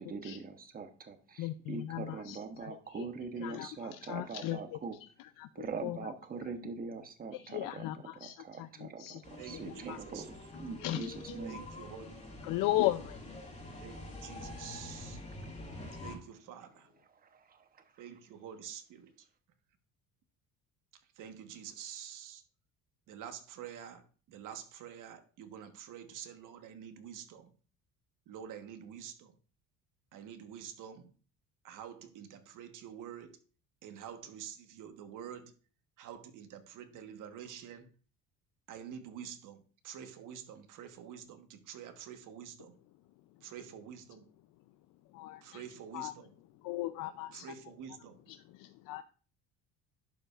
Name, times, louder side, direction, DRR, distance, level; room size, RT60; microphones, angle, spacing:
voice 1, 0.0-5.0 5.5-10.3 10.6-11.6 17.2-17.8, right 4 dB, 25° right, 8 dB, 0.9 m, -43 dB
voice 2, 1.4-3.1 3.4-4.8 5.4-5.5 5.8-6.0 7.3-10.0 10.8-11.3 12.4-13.4 45.1-45.6 45.9-46.1 46.6-47.5 48.3-49.0, left 15 dB, 70° left, 11 dB, 0.6 m, -37 dB
sound 1, 9.2-16.2, left 1 dB, 20° left, 2.2 m, -46 dB
voice 3, 9.4-10.3 11.4-12.1 12.4-12.6 13.8-15.2 16.0-16.9 18.0-19.3 21.2-22.4 23.1-27.5 28.3-29.3 30.1-31.1 31.6-33.3 33.8-35.5 36.0-37.9 38.7-42.8 43.4-44.3 45.4-46.3 47.3-48.2, right 9 dB, 60° right, 8 dB, 1.3 m, -47 dB
11.5 x 5.3 x 2.4 m, 0.38 s
cardioid pair, 115°, 34 cm